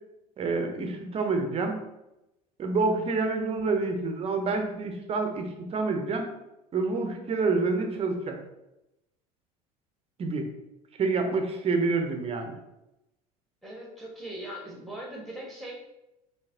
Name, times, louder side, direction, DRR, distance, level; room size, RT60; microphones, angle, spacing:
voice 1, 0.4-1.8 2.6-6.3 6.7-8.4 10.2-10.5 11.0-12.6, right 3 dB, 30° right, 4 dB, 0.6 m, -27 dB
voice 2, 13.6-15.7, right 1 dB, ahead, -3 dB, 1.2 m, -40 dB
3.8 x 2.7 x 2.7 m, 0.91 s
figure-of-eight pair, 70°, 20 cm